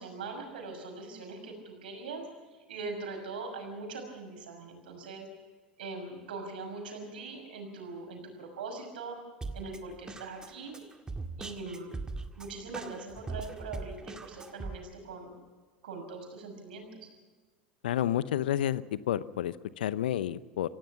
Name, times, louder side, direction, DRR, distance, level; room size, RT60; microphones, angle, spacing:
voice 1, 0.0-2.2 2.7-5.3 5.8-9.2 9.5-10.8 11.4-12.0 12.4-15.4 15.8-17.1, right 3 dB, 75° right, 4 dB, 6.1 m, -41 dB
Drum kit, 9.4-14.8, right 3 dB, 15° right, 1.9 m, -40 dB
voice 2, 17.8-20.7, left 11 dB, 70° left, 17 dB, 0.8 m, -30 dB
26.0 x 17.0 x 6.0 m, 1.4 s
hypercardioid pair, 80°, 5 cm